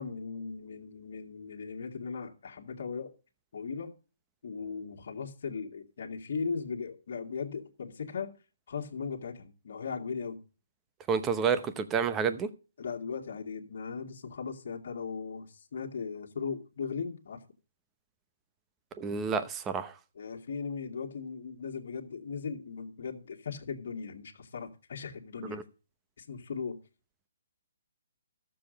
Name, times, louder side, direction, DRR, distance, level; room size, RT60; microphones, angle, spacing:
voice 1, 0.0-3.1 3.5-3.9 4.4-8.3 8.7-10.4 11.5-11.6 12.8-17.4 20.2-25.6 26.2-26.8, left 5 dB, 60° left, 1.9 m, -38 dB
voice 2, 11.1-12.5 19.0-19.9 25.5-25.6, right 6 dB, 15° right, 0.8 m, -29 dB
13.5 x 7.1 x 5.1 m
hypercardioid pair, 160°, 0 cm